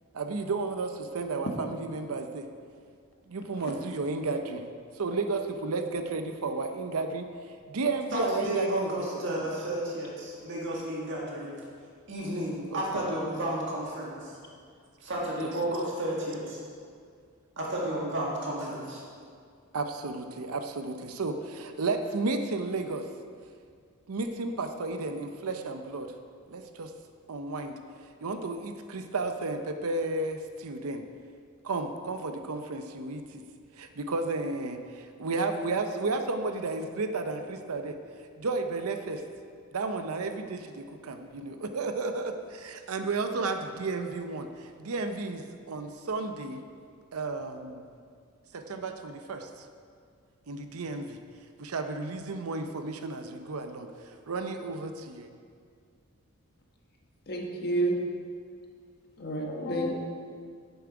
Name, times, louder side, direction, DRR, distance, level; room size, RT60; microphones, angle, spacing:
voice 1, 0.1-2.5 3.3-4.6 5.0-7.3 7.7-8.9 9.3-9.4 12.7-12.8 19.7-23.0 24.1-26.1 26.5-26.9 27.3-27.8 28.2-31.0 31.6-33.4 33.8-38.0 38.4-39.2 39.7-46.6 47.1-47.9 48.5-49.5 50.5-51.2 51.6-53.9 54.3-55.3, right 3 dB, 75° right, 7 dB, 0.6 m, -33 dB
voice 2, 8.1-11.6 12.1-14.4 15.0-16.6 17.6-19.0, right 1 dB, 55° right, -4 dB, 1.9 m, -32 dB
voice 3, 57.3-58.0 59.2-59.9, right 1 dB, 45° left, 0 dB, 1.2 m, -29 dB
9.5 x 7.0 x 4.9 m, 2.2 s
head